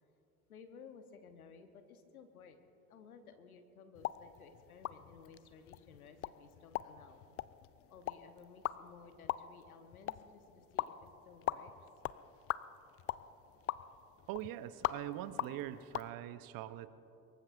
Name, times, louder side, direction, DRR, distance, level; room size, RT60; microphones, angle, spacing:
voice 1, 0.5-2.6 2.9-7.2 7.9-10.9 11.2-11.7, left 6 dB, 85° left, 8 dB, 1.2 m, -56 dB
sound 1, 3.9-16.1, left 13 dB, 35° left, 0.4 m, -43 dB
voice 2, 14.3-16.9, right 13 dB, 55° right, 13 dB, 0.9 m, -42 dB
24.0 x 22.5 x 2.7 m, 2.9 s
hypercardioid pair, 65°, 42 cm